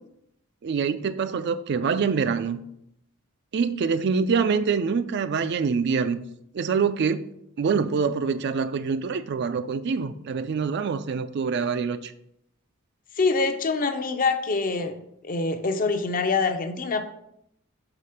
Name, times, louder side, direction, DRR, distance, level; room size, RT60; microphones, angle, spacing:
voice 1, 0.6-2.6 3.5-6.2 6.5-7.3 7.6-12.1, right 5 dB, 55° right, 0.3 m, -25 dB
voice 2, 13.2-14.9 15.2-17.0, left 4 dB, 40° left, 0.6 m, -25 dB
4.9 x 4.2 x 5.6 m
head